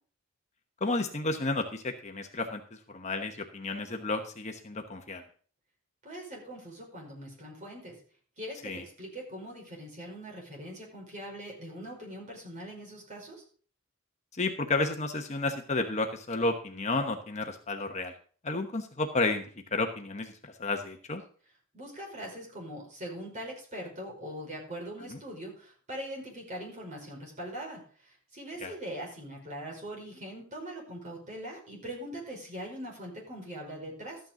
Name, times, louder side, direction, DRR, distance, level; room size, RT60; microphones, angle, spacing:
voice 1, 0.8-5.2 8.6-8.8 14.4-18.1 18.4-19.4 19.7-21.2 25.1-25.2 28.6-28.7, left 2 dB, 35° left, 5 dB, 1.1 m, -32 dB
voice 2, 6.0-7.9 8.4-13.4 21.7-34.2, equal, 35° right, -1 dB, 5.3 m, -42 dB
13.5 x 9.1 x 3.8 m, 0.42 s
head